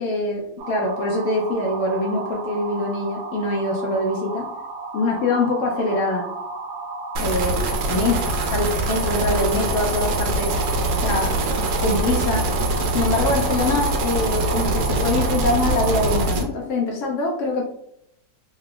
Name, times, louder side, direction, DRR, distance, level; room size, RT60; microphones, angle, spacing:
voice 1, 0.0-4.5 4.9-6.3 7.2-10.6 11.0-11.4 11.8-12.5 12.9-17.6, left 2 dB, 90° left, -1 dB, 0.6 m, -24 dB
sound 1, 0.6-16.3, right 3 dB, 50° right, 1.0 m, -33 dB
sound 2, 7.2-16.4, right 2 dB, 80° right, 1.2 m, -23 dB
3.2 x 2.8 x 2.3 m, 0.74 s
omnidirectional pair, 2.0 m